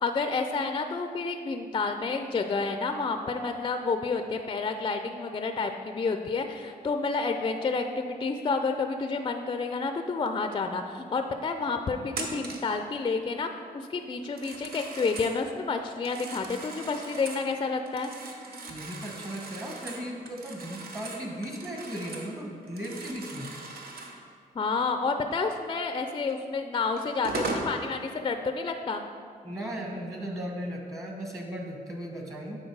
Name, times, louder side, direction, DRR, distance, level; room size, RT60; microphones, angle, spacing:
voice 1, 0.0-18.1 24.6-29.0, left 4 dB, 30° left, 6 dB, 0.4 m, -30 dB
Telephone, 12.1-12.7 14.2-15.4 15.9-17.5 17.9-22.3 22.6-24.2 26.3-26.4 27.0-27.7, right 3 dB, 75° right, 0.9 m, -39 dB
voice 2, 18.7-23.5 29.4-32.6, equal, 20° right, 0 dB, 1.2 m, -36 dB
8.8 x 4.3 x 4.7 m, 2.1 s
cardioid pair, 90°, 16 cm